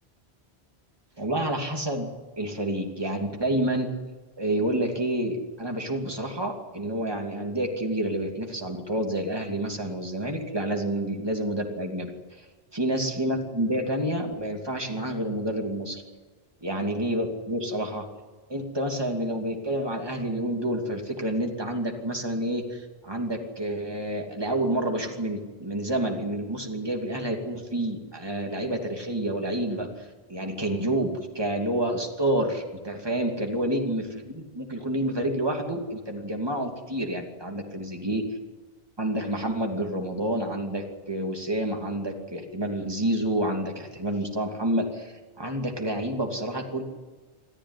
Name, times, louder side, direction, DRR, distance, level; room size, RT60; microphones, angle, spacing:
voice 1, 1.2-2.1 2.4-3.9 4.4-12.1 12.4-12.5 12.7-16.0 16.6-18.0 18.5-38.2 39.0-46.8, right 1 dB, 25° right, 2 dB, 2.9 m, -29 dB
26.0 x 14.5 x 10.0 m, 1.3 s
omnidirectional pair, 1.0 m